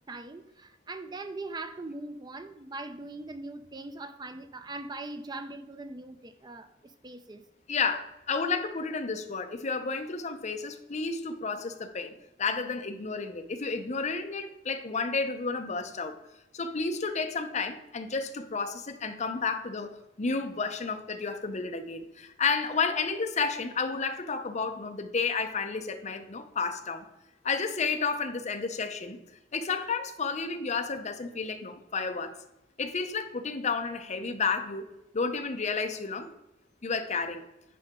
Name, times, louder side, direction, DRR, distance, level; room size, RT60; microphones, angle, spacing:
voice 1, 0.1-6.7 7.0-7.4, right 2 dB, 25° right, 9 dB, 0.5 m, -41 dB
voice 2, 7.7-12.1 12.4-16.2 16.5-27.1 27.4-29.2 29.5-32.4 32.8-34.9 35.1-36.3 36.8-37.4, left 4 dB, 40° left, 6 dB, 0.7 m, -31 dB
9.4 x 4.9 x 3.6 m, 0.90 s
head